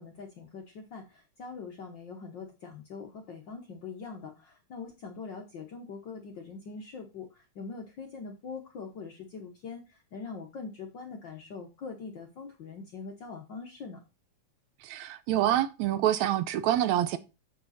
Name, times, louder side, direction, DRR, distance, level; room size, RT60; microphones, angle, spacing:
voice 1, 0.0-14.0, left 5 dB, 60° left, 1.2 m, -43 dB
voice 2, 14.8-17.2, right 12 dB, 75° right, 1.9 m, -26 dB
7.4 x 6.7 x 4.1 m
omnidirectional pair, 3.4 m